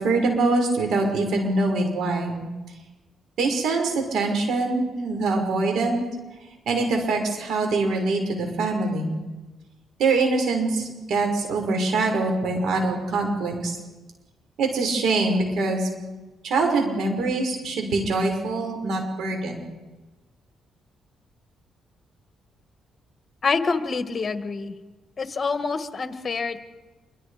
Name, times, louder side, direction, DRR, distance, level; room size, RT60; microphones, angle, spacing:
voice 1, 0.0-2.4 3.4-6.0 6.7-9.2 10.0-13.7 14.6-15.9 16.4-19.6, right 3 dB, 70° right, 3 dB, 5.9 m, -24 dB
voice 2, 23.4-24.8 25.2-26.6, left 4 dB, 35° left, 9 dB, 1.8 m, -26 dB
27.5 x 24.0 x 5.1 m, 1.2 s
cardioid pair, 90°, 0 cm